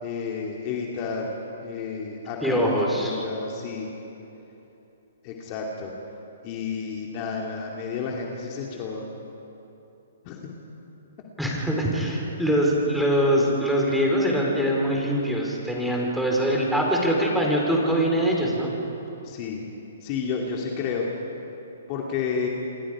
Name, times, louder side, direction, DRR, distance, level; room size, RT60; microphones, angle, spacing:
voice 1, 0.0-3.9 5.2-5.9 6.4-9.0 10.2-10.5 19.2-19.6 20.0-21.1 21.9-22.5, left 5 dB, 35° left, -1 dB, 2.5 m, -31 dB
voice 2, 2.4-3.2 11.4-18.7, equal, ahead, -2 dB, 4.1 m, -23 dB
28.0 x 23.5 x 5.0 m, 3.0 s
hypercardioid pair, 145°, 0 cm